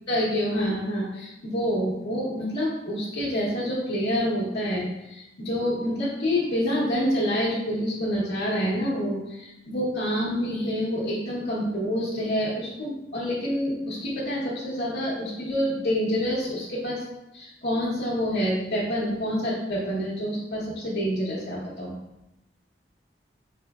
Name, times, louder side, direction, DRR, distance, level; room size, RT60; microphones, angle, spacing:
voice 1, 0.0-17.0 17.3-21.9, equal, 65° left, -9 dB, 1.0 m, -27 dB
4.4 x 3.3 x 2.3 m, 0.89 s
head